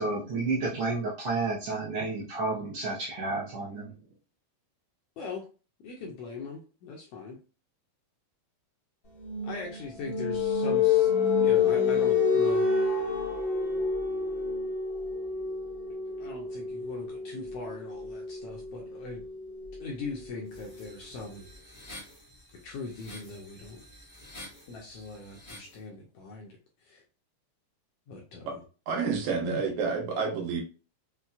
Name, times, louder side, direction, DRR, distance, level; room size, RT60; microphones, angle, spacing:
voice 1, 0.0-3.9, right 3 dB, 70° right, -5 dB, 1.4 m, -31 dB
voice 2, 5.8-7.4 9.4-12.7 16.2-19.2 19.8-21.5 22.6-23.8 24.7-27.0 28.1-28.5 29.4-29.6, left 4 dB, 75° left, 0 dB, 1.5 m, -40 dB
sound 1, 9.2-20.8, left 5 dB, 55° left, 0.6 m, -28 dB
sound 2, 20.5-25.8, left 1 dB, 25° left, 0.8 m, -49 dB
voice 3, 28.9-30.6, right 5 dB, 85° right, 1 dB, 2.4 m, -29 dB
5.6 x 2.2 x 2.4 m, 0.34 s
omnidirectional pair, 3.3 m